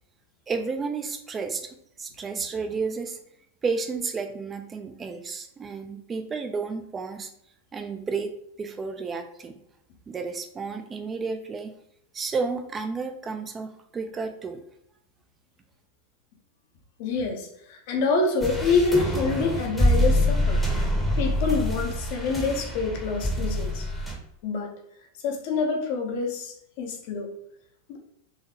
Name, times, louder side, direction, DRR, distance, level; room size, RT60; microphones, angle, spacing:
voice 1, 0.5-3.2 3.6-7.3 7.7-8.3 8.6-9.6 10.1-11.7 12.1-14.6, right 4 dB, 20° right, 7 dB, 0.5 m, -32 dB
voice 2, 17.0-20.6 21.2-23.9 24.4-24.7 25.2-27.3 27.9-28.0, left 4 dB, 50° left, 2 dB, 0.8 m, -26 dB
sound 1, 18.4-24.1, left 1 dB, 5° left, 0.9 m, -25 dB
3.9 x 3.1 x 2.8 m, 0.75 s
figure-of-eight pair, 90°, 0 cm